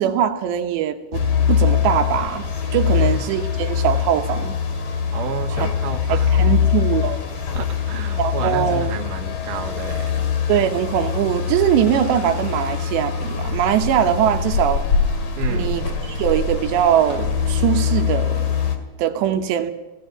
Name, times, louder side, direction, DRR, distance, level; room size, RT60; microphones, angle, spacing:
voice 1, 0.0-2.4 2.7-4.6 5.5-5.7 6.1-7.2 8.2-8.9 10.5-14.8 15.5-18.5 19.0-19.7, right 10 dB, 80° right, 6 dB, 3.3 m, -21 dB
sound 1, 1.1-18.8, left 7 dB, 45° left, 2.7 m, -23 dB
voice 2, 2.9-3.2 5.1-6.3 7.5-10.3 15.4-15.8, right 7 dB, 55° right, 3 dB, 2.8 m, -32 dB
17.5 x 17.0 x 9.0 m, 1.0 s
omnidirectional pair, 5.0 m